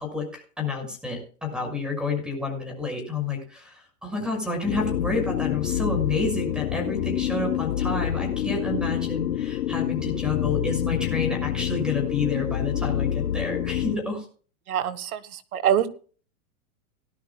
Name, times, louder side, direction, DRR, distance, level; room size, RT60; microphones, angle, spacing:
voice 1, 0.0-14.3, left 3 dB, ahead, 3 dB, 6.2 m, -29 dB
sound 1, 4.6-14.0, left 11 dB, 85° left, 0.9 m, -27 dB
voice 2, 14.7-15.9, right 9 dB, 85° right, 12 dB, 1.6 m, -25 dB
18.5 x 12.5 x 2.3 m, 0.39 s
supercardioid pair, 145°, 42 cm